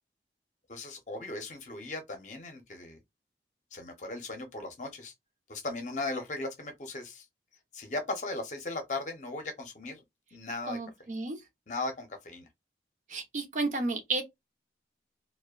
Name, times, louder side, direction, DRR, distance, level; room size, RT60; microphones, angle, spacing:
voice 1, 0.7-3.0 3.7-5.1 5.5-7.3 7.7-10.0 10.3-10.8 11.7-12.5, left 2 dB, 45° left, 0.6 m, -37 dB
voice 2, 10.7-11.4 13.1-14.2, right 3 dB, 45° right, 0.5 m, -32 dB
2.5 x 2.1 x 2.3 m
head